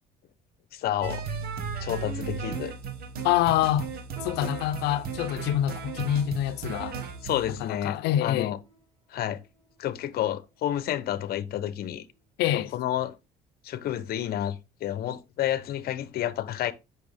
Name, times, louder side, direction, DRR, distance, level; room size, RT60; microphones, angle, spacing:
voice 1, 0.7-1.2 1.8-2.7 7.2-8.6 9.1-9.4 9.8-12.1 12.5-13.2 13.6-16.7, left 11 dB, 65° left, 1.0 m, -30 dB
sound 1, 1.0-7.6, right 6 dB, 65° right, 1.7 m, -35 dB
voice 2, 3.2-3.9 4.2-7.0 7.6-8.6 12.4-12.7, left 12 dB, 85° left, 0.7 m, -26 dB
sound 2, 4.2-9.8 10.5-10.6 11.4-11.7 12.1-12.2 12.9-13.0, equal, 20° right, 4.8 m, -51 dB
8.5 x 6.1 x 3.5 m
cardioid pair, 110°, 17 cm